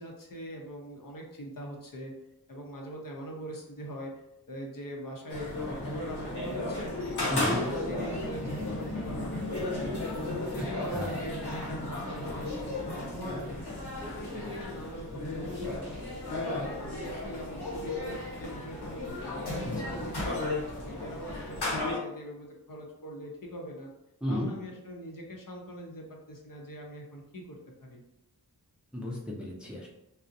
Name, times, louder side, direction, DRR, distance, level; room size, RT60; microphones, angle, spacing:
voice 1, 0.0-2.1 2.5-4.1 4.5-6.9 7.4-10.0 10.4-13.6 14.0-15.9 16.2-20.4 20.8-23.9 24.3-28.0, equal, 55° left, 0 dB, 0.6 m, -42 dB
sound 1, 5.3-22.0, left 2 dB, 85° left, 0.8 m, -34 dB
voice 2, 7.3-7.7 10.9-11.3 19.6-20.0 24.2-24.5 28.9-29.9, left 1 dB, 5° right, -3 dB, 0.5 m, -33 dB
2.5 x 2.0 x 2.6 m, 0.87 s
wide cardioid pair, 50°, 39 cm